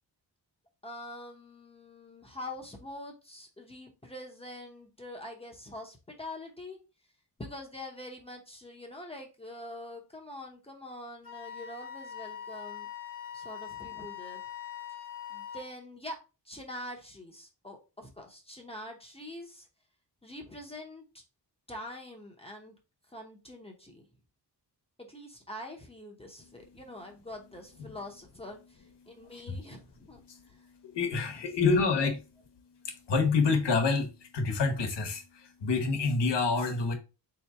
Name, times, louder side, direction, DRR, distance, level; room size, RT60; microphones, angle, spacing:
voice 1, 0.8-6.8 7.4-12.9 13.3-14.4 15.3-16.2 16.4-19.7 20.2-21.2 21.7-22.7 23.1-24.1 25.1-30.6 31.7-31.8, left 1 dB, 15° left, 0.7 m, -44 dB
Wind instrument woodwind instrument, 11.2-15.7, left 9 dB, 55° left, 1.0 m, -42 dB
voice 2, 26.4-26.8 29.0-29.7 30.2-36.9, left 4 dB, 85° left, 1.0 m, -29 dB
3.7 x 2.9 x 3.3 m
wide cardioid pair, 135°, 41 cm